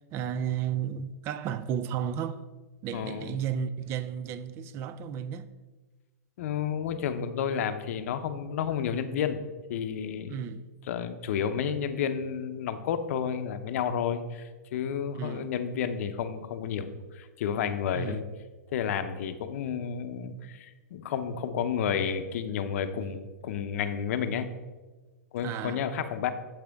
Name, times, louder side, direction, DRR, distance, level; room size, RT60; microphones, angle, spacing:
voice 1, 0.1-2.4 2.8-5.5 10.3-10.6 15.1-15.5 17.9-18.2 25.4-25.8, right 8 dB, 30° right, 0.4 m, -33 dB
voice 2, 2.9-3.3 6.4-9.4 9.7-10.5 10.9-16.9 17.1-18.2 18.7-24.5 25.3-26.3, left 8 dB, 60° left, 0.7 m, -31 dB
8.8 x 7.3 x 3.5 m
hypercardioid pair, 145°, 9 cm